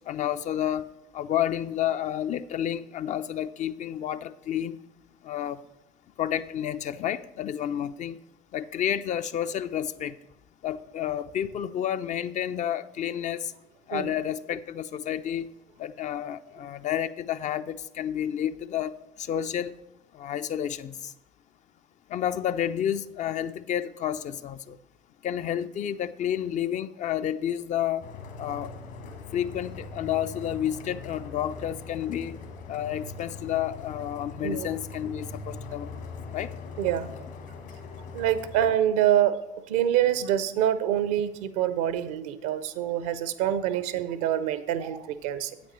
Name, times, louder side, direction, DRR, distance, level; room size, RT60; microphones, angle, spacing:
voice 1, 0.1-0.9 1.1-4.8 5.2-5.6 6.2-8.2 8.5-10.2 10.6-13.5 13.9-15.5 15.8-18.9 19.2-19.7 20.1-21.1 22.1-24.8 25.2-28.0 28.4-28.7 29.3-32.4 32.7-36.0 36.3-36.5, left 10 dB, 35° left, 12 dB, 0.4 m, -30 dB
sound 1, 28.0-38.7, left 4 dB, 60° left, 1.4 m, -41 dB
voice 2, 36.8-37.1 38.1-39.4 39.7-45.5, right 11 dB, 65° right, 14 dB, 0.6 m, -26 dB
9.2 x 8.3 x 3.2 m, 0.90 s
figure-of-eight pair, 55°, 21 cm